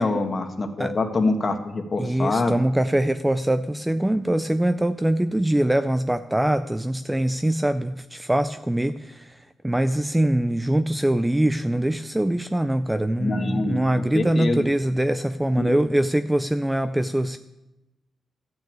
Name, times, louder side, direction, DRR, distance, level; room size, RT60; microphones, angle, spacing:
voice 1, 0.0-2.6 13.2-14.6 15.6-15.7, left 3 dB, 30° left, 6 dB, 1.3 m, -25 dB
voice 2, 2.0-17.4, right 1 dB, 5° right, 10 dB, 0.3 m, -23 dB
13.5 x 6.1 x 8.6 m, 0.98 s
wide cardioid pair, 160°, 0 cm